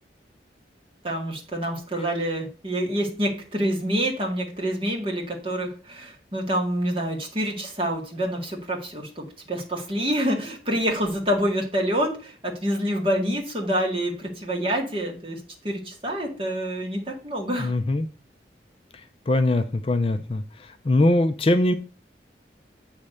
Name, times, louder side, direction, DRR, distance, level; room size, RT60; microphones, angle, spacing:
voice 1, 1.0-15.4 15.6-17.7, equal, 30° right, 0 dB, 1.9 m, -27 dB
voice 2, 17.6-18.1 19.3-20.4 20.8-21.7, left 1 dB, 30° left, 8 dB, 0.4 m, -21 dB
8.4 x 3.3 x 6.3 m, 0.37 s
head